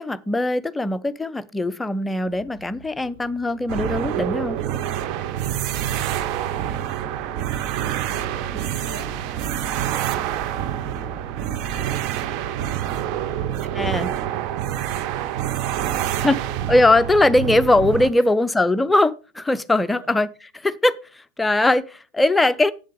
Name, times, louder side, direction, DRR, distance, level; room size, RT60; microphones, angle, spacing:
voice 1, 0.0-4.6 8.4-8.6 13.8-14.1 16.2-16.4 16.7-20.3 20.6-21.0 21.4-22.7, left 2 dB, 5° left, 0.6 m, -20 dB
sound 1, 2.2-11.1, right 1 dB, 60° right, 3.4 m, -48 dB
sound 2, 3.7-18.1, right 11 dB, 40° right, 0.7 m, -27 dB
voice 2, 6.5-7.9 8.6-9.6 10.0-12.8 13.2-14.4 14.8-15.5 16.0-16.7 18.1-18.5 19.8-20.2, equal, 85° right, 5.7 m, -48 dB
8.4 x 7.5 x 5.0 m
figure-of-eight pair, 90°, 0 cm